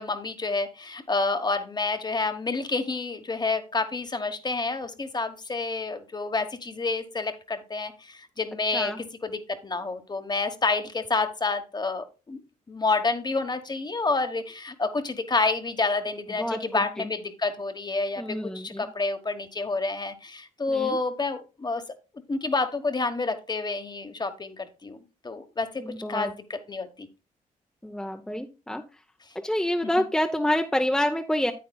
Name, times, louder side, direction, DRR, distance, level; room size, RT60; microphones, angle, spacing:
voice 1, 0.0-12.4 12.7-21.8 22.3-25.8 26.1-27.1 29.8-29.9, left 3 dB, 30° left, 9 dB, 1.2 m, -29 dB
voice 2, 18.2-18.8 20.7-21.0 25.8-26.3 27.8-28.8 29.4-31.5, left 1 dB, 5° left, 4 dB, 0.7 m, -27 dB
9.5 x 8.5 x 2.3 m, 0.31 s
cardioid pair, 70°, 15 cm